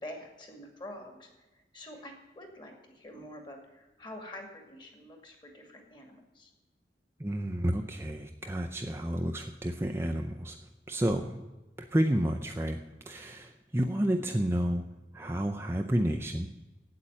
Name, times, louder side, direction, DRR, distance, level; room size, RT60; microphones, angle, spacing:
voice 1, 0.0-6.5, left 1 dB, 25° left, 3 dB, 2.2 m, -47 dB
voice 2, 7.2-10.6 10.9-11.4 11.9-12.8 13.1-14.8 15.1-16.5, right 1 dB, 15° right, 4 dB, 0.5 m, -30 dB
8.6 x 8.4 x 8.9 m, 1.1 s
head